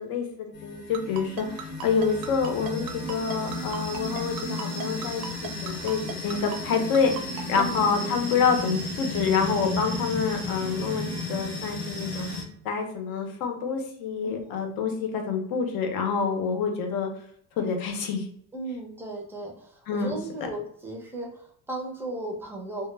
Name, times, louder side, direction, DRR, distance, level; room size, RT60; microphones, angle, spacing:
voice 1, 0.0-12.3 12.6-17.1 17.6-18.3 19.9-20.2, left 5 dB, 70° left, 4 dB, 0.7 m, -27 dB
sound 1, 0.5-12.4, left 2 dB, 30° left, 0.7 m, -34 dB
Ringtone, 0.9-7.6, right 7 dB, 70° right, 0.5 m, -36 dB
voice 2, 18.5-22.9, right 1 dB, 5° right, 0 dB, 0.4 m, -36 dB
2.2 x 2.1 x 3.1 m, 0.66 s
cardioid pair, 155°, 36 cm